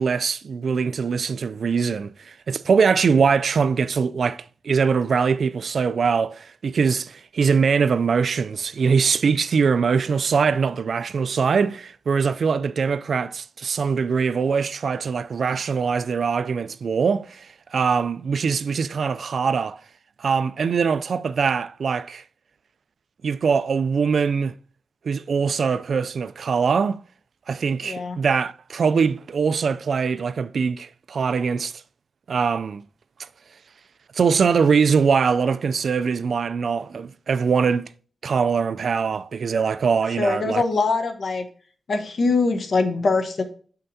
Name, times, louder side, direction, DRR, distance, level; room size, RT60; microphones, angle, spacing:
voice 1, 0.0-19.8 20.2-22.2 23.2-24.5 25.0-27.0 27.5-31.7 32.3-32.8 33.2-33.3 34.1-37.8 38.2-40.6, right 5 dB, 60° right, 0.3 m, -22 dB
voice 2, 27.8-28.2 40.2-41.4 41.9-43.4, left 3 dB, 55° left, 1.0 m, -22 dB
7.6 x 5.7 x 2.7 m
wide cardioid pair, 135°, 0 cm